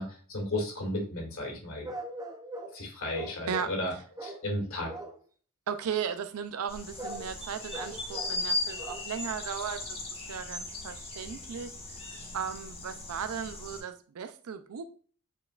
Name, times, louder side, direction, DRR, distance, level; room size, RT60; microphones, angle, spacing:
voice 1, 0.0-1.9 2.7-4.9, left 1 dB, 65° left, 2.2 m, -34 dB
sound 1, 1.8-2.8 3.1-3.8 4.2-4.5 4.9-5.2 7.0-7.3 7.7-8.5 8.8-9.1 9.6-9.7, right 1 dB, 15° right, 0.5 m, -41 dB
voice 2, 5.7-10.0 10.3-11.7 12.3-14.8, right 7 dB, 80° right, 0.4 m, -36 dB
sound 2, 6.7-13.8, left 2 dB, 25° left, 1.2 m, -38 dB
8.7 x 4.6 x 2.4 m
head